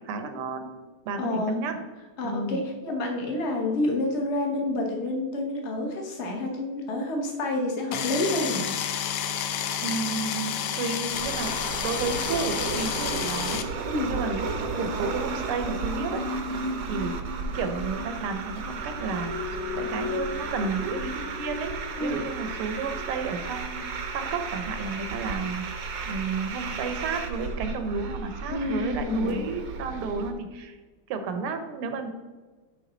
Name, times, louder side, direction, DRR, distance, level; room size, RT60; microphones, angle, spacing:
voice 1, 0.1-0.7 1.1-1.8 2.2-2.6 9.8-11.5 11.8-13.6 14.1-16.2 16.8-17.1 17.5-19.4 19.7-21.7 22.0-25.7 26.0-30.8 31.1-32.1, right 4 dB, 80° right, 7 dB, 1.7 m, -32 dB
voice 2, 1.2-1.6 2.2-8.6 13.9-14.2 22.0-22.2 28.5-29.3, left 2 dB, 40° left, 1 dB, 1.2 m, -28 dB
sound 1, 7.9-13.6, left 8 dB, 80° left, 0.9 m, -30 dB
sound 2, 11.1-30.3, right 4 dB, 60° right, 1.1 m, -34 dB
sound 3, 15.0-25.3 25.5-25.8, left 3 dB, 10° left, 0.9 m, -37 dB
10.0 x 3.8 x 3.9 m, 1.3 s
omnidirectional pair, 2.4 m